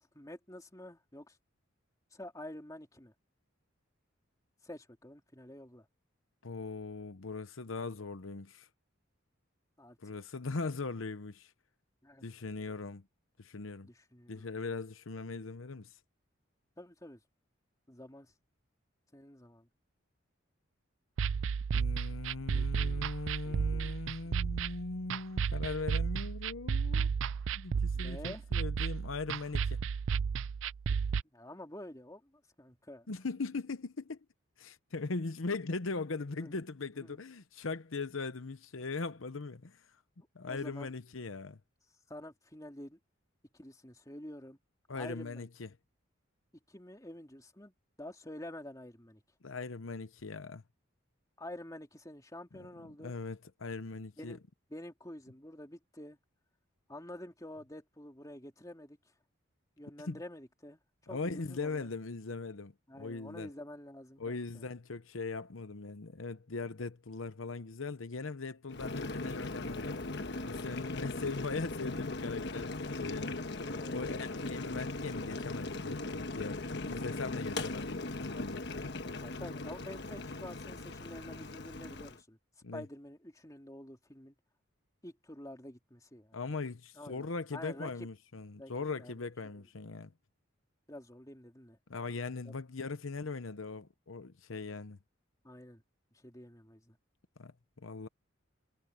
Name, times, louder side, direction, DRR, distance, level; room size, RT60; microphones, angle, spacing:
voice 1, 0.0-1.4 2.1-3.1 4.6-5.9 9.8-10.0 12.0-12.3 13.8-14.5 16.8-17.2 17.9-18.3 19.1-19.7 22.5-23.1 23.5-23.9 24.2-24.6 27.9-28.4 31.3-33.1 36.4-36.5 37.0-37.2 40.5-40.9 42.1-43.0 43.5-44.6 44.9-45.5 46.7-49.2 51.4-53.1 54.2-54.4 54.7-56.2 56.9-59.0 59.8-60.8 61.1-61.9 62.9-64.6 73.5-74.0 79.2-82.4 82.7-84.3 85.0-86.4 86.9-88.1 88.6-88.7 89.0-89.1 89.6-89.7 90.9-91.8 92.4-92.6 95.4-95.8 96.1-97.0, left 1 dB, 15° left, 3.2 m, -48 dB
voice 2, 6.4-8.7 10.0-11.5 12.2-13.0 13.4-13.9 14.3-16.0 21.7-27.1 27.5-29.8 33.1-34.2 34.6-39.9 40.3-41.6 44.9-45.7 49.4-50.6 52.5-52.7 53.0-54.4 60.1-60.2 61.1-62.7 63.0-63.5 64.2-70.1 70.4-78.6 82.6-82.9 86.3-90.1 91.9-95.0 97.4-98.1, left 3 dB, 80° left, 0.9 m, -40 dB
sound 1, 21.2-31.2, right 6 dB, 70° right, 0.4 m, -33 dB
Boiling, 68.7-82.2, left 2 dB, 55° left, 1.3 m, -39 dB
head